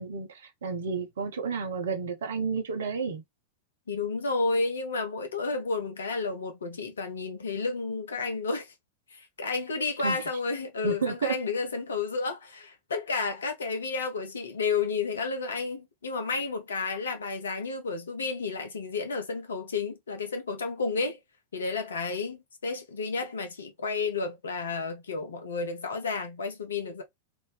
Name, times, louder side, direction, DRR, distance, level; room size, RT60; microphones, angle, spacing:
voice 1, 0.0-3.2 10.0-10.3 10.8-11.3, right 5 dB, 65° right, 0.8 m, -31 dB
voice 2, 3.9-8.7 9.1-21.2 21.5-27.0, left 4 dB, 70° left, 0.9 m, -31 dB
3.0 x 2.7 x 3.2 m
figure-of-eight pair, 90°, 0 cm